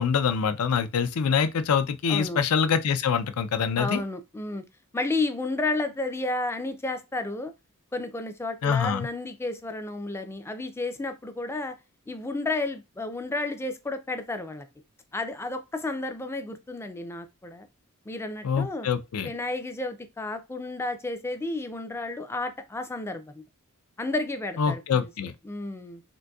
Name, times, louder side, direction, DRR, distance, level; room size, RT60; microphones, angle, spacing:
voice 1, 0.0-4.0 8.6-9.1 18.4-19.3 24.6-25.3, left 6 dB, 75° left, 0.4 m, -25 dB
voice 2, 2.1-2.4 3.8-4.6 4.9-7.5 7.9-11.8 12.1-14.7 15.1-17.7 18.1-18.9 19.2-23.4 24.0-26.0, left 2 dB, 10° left, 0.3 m, -32 dB
3.9 x 2.6 x 2.3 m
head